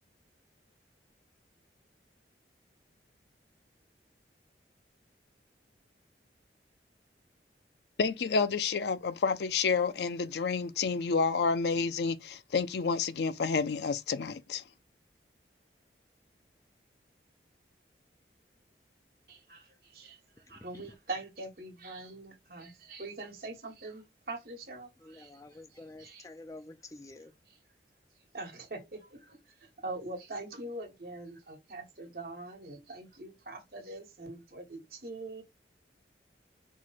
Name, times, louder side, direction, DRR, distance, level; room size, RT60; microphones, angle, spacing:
voice 1, 8.0-14.6, left 5 dB, 70° left, 0.4 m, -29 dB
voice 2, 19.3-20.2 20.5-26.3 27.5-27.6 28.3-35.4, right 2 dB, 55° right, 1.3 m, -43 dB
voice 3, 25.0-27.3, left 2 dB, 20° left, 0.4 m, -49 dB
4.5 x 2.2 x 4.0 m
head